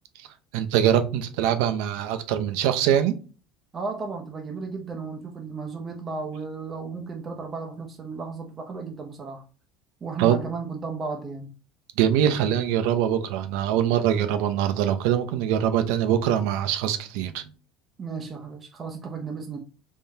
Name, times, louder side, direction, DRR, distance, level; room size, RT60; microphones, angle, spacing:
voice 1, 0.5-3.2 10.2-10.4 12.0-17.5, right 10 dB, 70° right, 9 dB, 0.6 m, -23 dB
voice 2, 3.7-9.4 10.0-11.5 18.0-19.6, right 4 dB, 20° right, 2 dB, 0.5 m, -34 dB
3.6 x 3.4 x 2.7 m, 0.35 s
cardioid pair, 165°, 0 cm